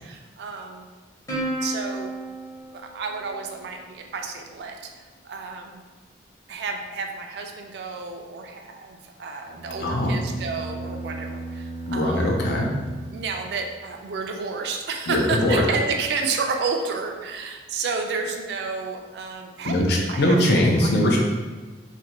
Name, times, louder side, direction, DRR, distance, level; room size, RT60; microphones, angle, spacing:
voice 1, 0.0-0.9 1.6-2.1 2.7-4.8 5.2-5.8 6.5-12.3 13.1-19.7 20.1-20.4 20.8-20.9, right 4 dB, 70° right, 3 dB, 0.3 m, -31 dB
Plucked string instrument, 1.3-4.0, right 1 dB, 20° left, 0.7 m, -33 dB
sound 1, 9.4-13.8, right 2 dB, 40° left, 1.0 m, -36 dB
voice 2, 9.8-10.2 11.9-12.7 15.1-15.6 19.6-21.2, left 1 dB, 65° left, -1 dB, 0.5 m, -21 dB
2.5 x 2.1 x 2.9 m, 1.3 s
head